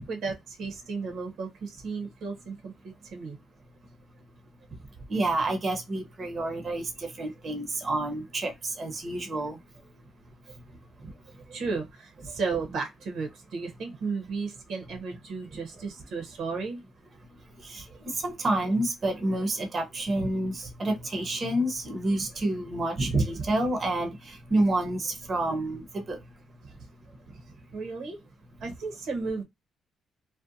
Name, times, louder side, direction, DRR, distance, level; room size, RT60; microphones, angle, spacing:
voice 1, 0.0-2.7 3.0-3.4 11.5-16.8 27.7-28.2 28.6-29.4, right 4 dB, 75° right, 0.8 m, -34 dB
voice 2, 5.1-9.6 17.6-17.8 18.1-26.2, right 2 dB, 40° right, 0.7 m, -28 dB
2.6 x 2.1 x 2.5 m
cardioid pair, 90°, 0 cm